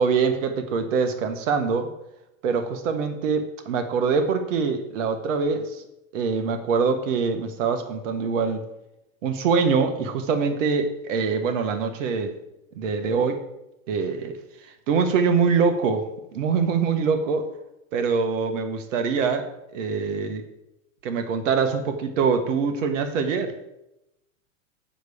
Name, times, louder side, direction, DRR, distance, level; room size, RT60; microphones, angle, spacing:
voice 1, 0.0-1.9 2.4-5.8 6.1-8.6 9.2-12.3 12.8-13.4 13.9-14.3 14.9-16.1 16.3-17.5 17.9-19.5 19.7-20.4 21.0-23.5, right 5 dB, 65° right, 7 dB, 1.3 m, -24 dB
7.8 x 4.8 x 6.8 m, 0.87 s
hypercardioid pair, 120°, 41 cm